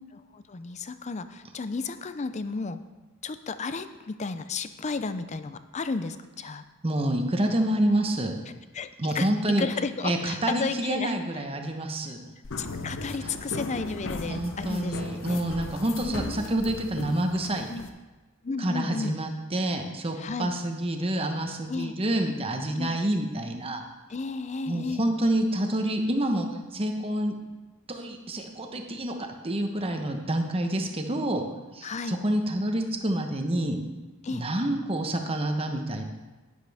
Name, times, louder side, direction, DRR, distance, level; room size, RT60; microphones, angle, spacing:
voice 1, 0.3-2.8 3.2-6.6 8.7-11.1 12.6-15.4 16.0-16.6 17.7-17.9 18.4-19.2 20.2-20.5 21.7-21.9 22.8-23.0 24.1-25.1 31.8-32.2 34.2-34.4, left 4 dB, 30° left, 11 dB, 0.5 m, -33 dB
voice 2, 6.8-8.3 9.0-9.7 10.0-12.2 13.2-13.3 14.3-17.8 18.6-23.8 24.7-27.3 27.9-31.4 31.7-33.8 34.3-36.0, right 1 dB, 25° right, 4 dB, 1.0 m, -28 dB
sound 1, 12.4-17.9, left 2 dB, 60° left, 0.8 m, -37 dB
11.5 x 10.0 x 3.5 m, 1.2 s
head